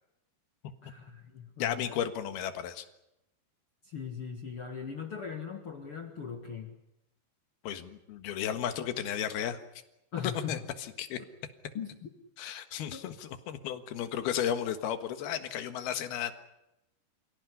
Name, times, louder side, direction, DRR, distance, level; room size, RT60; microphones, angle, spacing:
voice 1, 0.8-1.9 3.8-6.7 10.1-10.6 11.7-12.1 12.9-13.0, left 7 dB, 45° left, 5 dB, 2.1 m, -39 dB
voice 2, 1.6-2.9 7.6-9.6 10.5-10.6 11.0-11.2 12.4-16.3, left 9 dB, 75° left, 9 dB, 3.5 m, -34 dB
28.0 x 17.5 x 9.9 m, 0.90 s
omnidirectional pair, 4.5 m